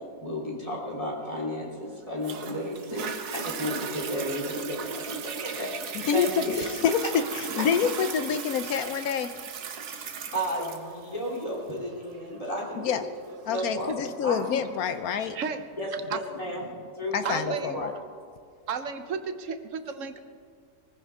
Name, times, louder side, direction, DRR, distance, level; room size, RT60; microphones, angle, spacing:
voice 1, 0.2-5.7 6.1-6.6 10.3-12.9 13.4-13.9 14.2-14.4 15.8-16.7 17.0-17.9, equal, 20° left, -3 dB, 3.4 m, -33 dB
Toilet flush, 2.2-15.3 15.9-16.0, right 6 dB, 80° right, 1.6 m, -37 dB
voice 2, 6.0-9.3 12.8-13.0 13.5-15.4 17.1-17.9, left 7 dB, 70° left, 10 dB, 1.1 m, -27 dB
voice 3, 17.2-17.8 18.7-20.2, right 6 dB, 55° right, 9 dB, 1.2 m, -33 dB
22.5 x 15.0 x 3.6 m, 2.2 s
omnidirectional pair, 1.7 m